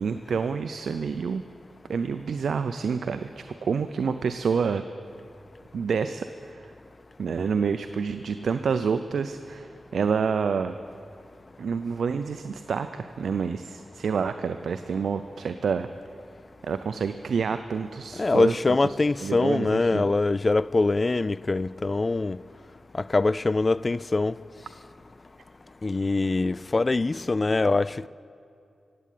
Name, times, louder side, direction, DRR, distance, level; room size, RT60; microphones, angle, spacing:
voice 1, 0.0-1.4 1.9-4.9 5.7-6.3 6.5-6.6 7.2-10.8 11.6-15.9 16.6-20.1, right 6 dB, 80° right, 0.4 m, -28 dB
voice 2, 18.2-22.4 23.1-24.3 25.8-28.1, left 3 dB, 35° left, 0.3 m, -23 dB
16.0 x 8.5 x 9.2 m
cardioid pair, 60°, 0 cm